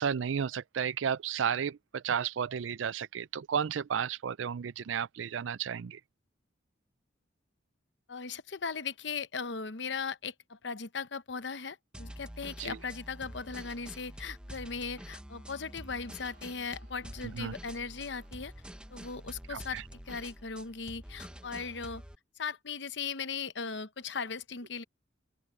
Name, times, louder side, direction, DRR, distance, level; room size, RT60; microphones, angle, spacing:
voice 1, 0.0-6.0 12.6-12.8 17.3-17.5 19.5-19.8, right 7 dB, 80° right, 0.4 m, -33 dB
voice 2, 8.1-18.5 18.9-22.0 22.4-24.8, left 5 dB, 65° left, 0.9 m, -38 dB
sound 1, 11.9-22.2, equal, 5° right, 1.0 m, -47 dB
sound 2, 15.9-20.4 20.9-21.0, right 3 dB, 50° right, 3.8 m, -68 dB
open air
head